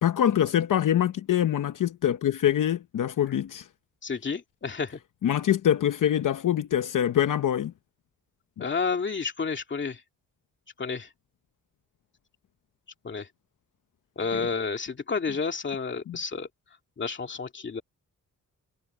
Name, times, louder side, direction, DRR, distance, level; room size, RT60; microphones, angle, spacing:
voice 1, 0.0-3.7 5.2-7.7 8.6-8.7 14.3-14.5 16.1-16.2, left 10 dB, 75° left, 0.9 m, -24 dB
voice 2, 4.0-5.0 8.6-10.0 10.8-11.1 13.0-13.3 14.2-16.5 17.0-17.8, left 5 dB, 35° left, 2.3 m, -30 dB
wide cardioid pair, 175°, 32 cm